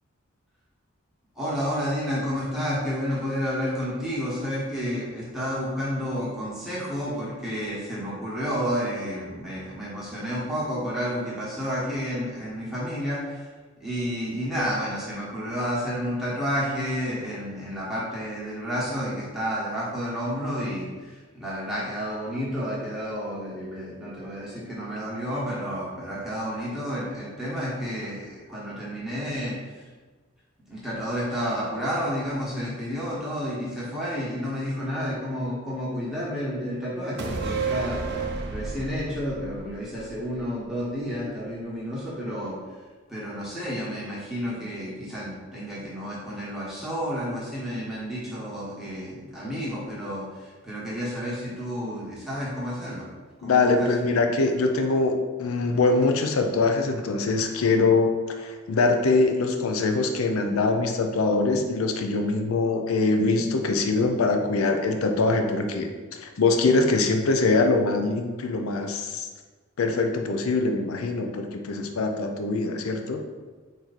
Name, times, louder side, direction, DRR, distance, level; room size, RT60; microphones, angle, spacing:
voice 1, 1.3-13.5 13.8-29.8 30.7-38.0 38.5-42.6 43.1-53.1 53.4-53.9, equal, ahead, -8 dB, 1.1 m, -30 dB
sound 1, 37.2-40.8 41.1-41.2, right 4 dB, 50° right, 0.5 m, -32 dB
voice 2, 53.4-65.9 66.2-69.3 69.8-73.2, left 3 dB, 85° left, 4 dB, 0.4 m, -23 dB
4.5 x 2.7 x 4.0 m, 1.3 s
head